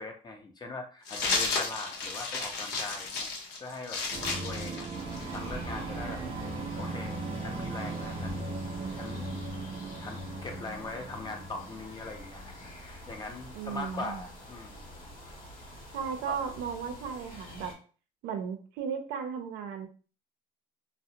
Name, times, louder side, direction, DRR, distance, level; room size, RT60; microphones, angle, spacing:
voice 1, 0.0-3.3 3.6-4.9 5.3-6.2 6.8-8.5 8.9-9.3 10.0-14.9 15.3-15.4 16.3-16.4, left 3 dB, 25° left, 4 dB, 0.6 m, -41 dB
sound 1, 1.1-5.5, left 4 dB, 80° left, 0.6 m, -33 dB
sound 2, 4.1-12.7, right 3 dB, 35° right, 0.5 m, -38 dB
sound 3, 4.9-17.7, left 1 dB, 50° left, 0.9 m, -46 dB
voice 2, 13.5-14.2 15.9-17.7 18.2-19.9, right 7 dB, 90° right, 6 dB, 0.5 m, -35 dB
2.4 x 2.0 x 2.7 m, 0.38 s
cardioid pair, 110°, 17 cm